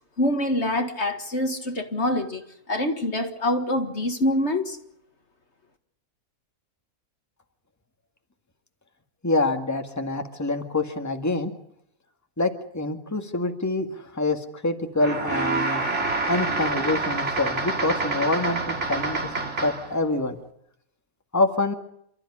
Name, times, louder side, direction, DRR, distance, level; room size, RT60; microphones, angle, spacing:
voice 1, 0.2-4.8, left 1 dB, 50° left, 2.0 m, -25 dB
voice 2, 9.2-11.5 12.4-15.8 16.3-19.2 19.6-20.4 21.3-21.7, left 2 dB, 10° left, 2.0 m, -26 dB
sound 1, 15.0-20.0, right 3 dB, 50° right, 3.1 m, -27 dB
28.5 x 14.0 x 9.9 m
omnidirectional pair, 1.5 m